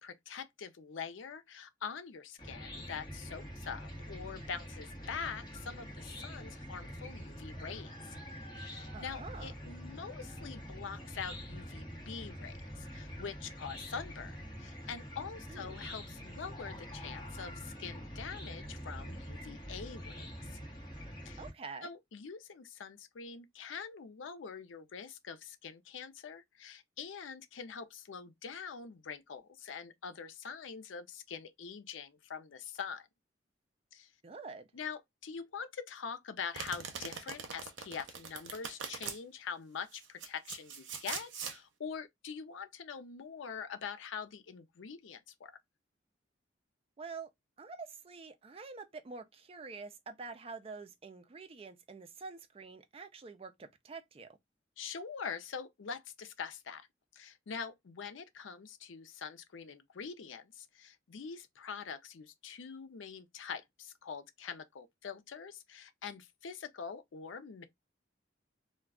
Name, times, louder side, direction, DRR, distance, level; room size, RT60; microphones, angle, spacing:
voice 1, 0.0-8.2 8.6-20.6 21.3-21.4 21.8-33.1 33.9-34.1 34.7-45.5 54.8-56.9 57.1-67.6, left 6 dB, 85° left, 0.5 m, -44 dB
Chicken rooster / Cricket, 2.4-21.5, equal, 20° left, 1.0 m, -45 dB
voice 2, 8.9-9.5 15.5-15.9 21.4-21.9 34.2-34.7 47.0-47.3 47.6-54.3, right 4 dB, 30° right, 0.3 m, -47 dB
Domestic sounds home sounds, 36.5-39.2 39.9-41.6, right 6 dB, 75° right, 0.6 m, -42 dB
2.3 x 2.2 x 3.5 m
head